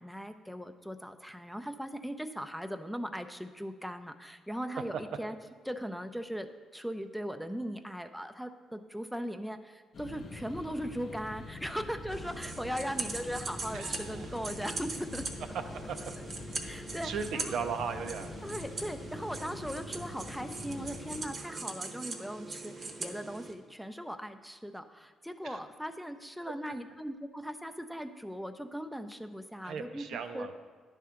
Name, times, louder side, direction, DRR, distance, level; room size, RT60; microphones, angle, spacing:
voice 1, 0.0-5.3 5.7-15.3 16.6-17.6 18.4-30.5, equal, ahead, 8 dB, 0.4 m, -39 dB
sound 1, 9.9-21.3, left 3 dB, 55° left, 0.6 m, -45 dB
sound 2, 12.1-23.5, right 3 dB, 45° right, 0.9 m, -41 dB
voice 2, 13.7-14.3 15.9-16.0 17.0-18.3 25.4-25.6 29.6-30.5, right 6 dB, 75° right, 7 dB, 0.6 m, -37 dB
10.0 x 3.7 x 5.7 m, 1.5 s
cardioid pair, 90°, 0 cm